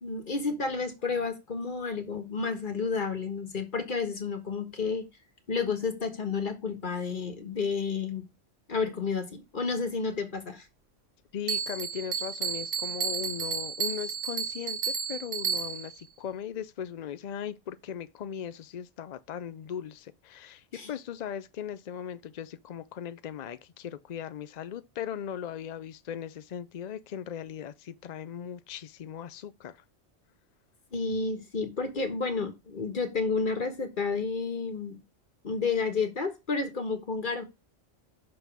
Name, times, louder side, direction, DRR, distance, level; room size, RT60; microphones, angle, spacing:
voice 1, 0.0-5.1 5.5-8.3 8.7-10.6 20.7-20.9 30.9-35.0 35.4-37.4, left 4 dB, 45° left, 1.5 m, -31 dB
voice 2, 11.3-29.8, left 9 dB, 65° left, 0.4 m, -38 dB
Bell, 11.5-16.0, right 7 dB, 85° right, 1.6 m, -32 dB
6.2 x 5.3 x 6.0 m
omnidirectional pair, 1.3 m